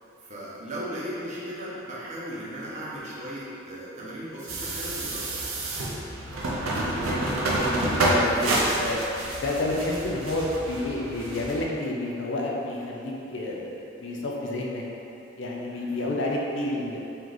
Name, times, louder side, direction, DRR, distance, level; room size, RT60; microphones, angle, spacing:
voice 1, 0.2-5.5 15.8-16.0, equal, 35° right, -8 dB, 0.7 m, -37 dB
sound 1, 4.5-11.6, right 1 dB, 80° right, 0.6 m, -28 dB
voice 2, 6.9-8.5 8.8-9.0 9.4-14.8 15.4-17.0, left 2 dB, 60° left, -2 dB, 0.5 m, -30 dB
3.3 x 3.1 x 3.8 m, 3.0 s
head